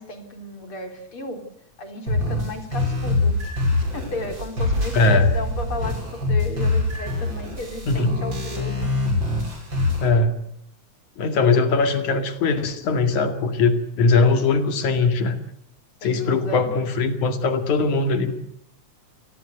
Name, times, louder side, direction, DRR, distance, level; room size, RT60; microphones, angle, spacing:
voice 1, 0.0-1.4 1.8-3.4 3.9-9.0 16.0-16.7, left 2 dB, 45° left, 6 dB, 4.4 m, -34 dB
sound 1, 2.1-10.1, left 2 dB, 40° right, 6.9 m, -24 dB
voice 2, 4.9-5.3 7.9-8.2 10.0-10.3 11.2-15.4 16.0-18.3, left 3 dB, 80° left, 8 dB, 3.6 m, -20 dB
27.5 x 20.0 x 8.0 m, 0.71 s
omnidirectional pair, 3.4 m